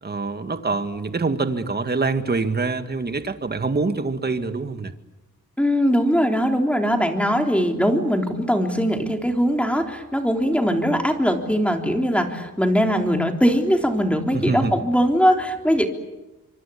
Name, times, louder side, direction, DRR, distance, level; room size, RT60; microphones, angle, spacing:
voice 1, 0.0-4.9 14.3-14.7, right 3 dB, 30° right, 9 dB, 2.0 m, -25 dB
voice 2, 5.6-15.9, equal, 5° left, 3 dB, 3.6 m, -21 dB
26.0 x 23.5 x 8.5 m, 1.0 s
cardioid pair, 85°, 32 cm